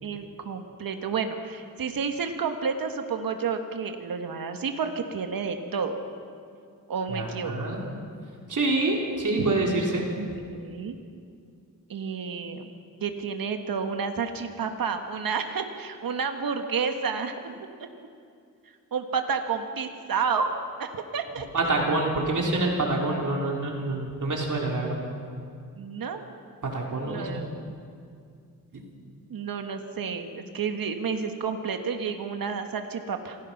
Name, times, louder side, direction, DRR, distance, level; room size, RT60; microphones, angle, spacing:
voice 1, 0.0-6.0 6.9-7.7 9.4-9.5 10.2-10.9 11.9-12.7 13.0-17.7 18.9-20.5 20.8-21.5 25.7-26.2 27.0-27.7 29.3-33.4, right 5 dB, 80° right, 6 dB, 1.6 m, -30 dB
voice 2, 7.1-7.8 8.5-10.0 21.5-25.0 26.6-27.4 28.7-28.8, right 2 dB, 60° right, -1 dB, 4.0 m, -26 dB
26.5 x 17.5 x 6.0 m, 2.3 s
cardioid pair, 75°, 34 cm